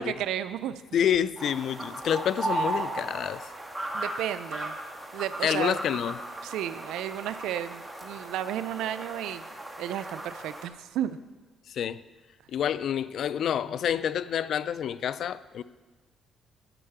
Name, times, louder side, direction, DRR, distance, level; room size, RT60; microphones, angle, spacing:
voice 1, 0.0-0.7 3.9-4.8 5.1-5.8 6.4-9.5 9.8-11.2, right 11 dB, 90° right, 0.4 m, -33 dB
voice 2, 0.9-3.4 5.4-6.2 11.7-12.0 12.5-15.6, left 9 dB, 70° left, 0.4 m, -28 dB
sound 1, 1.4-10.7, right 2 dB, 10° right, 1.5 m, -36 dB
9.9 x 5.5 x 8.0 m
cardioid pair, 90°, 0 cm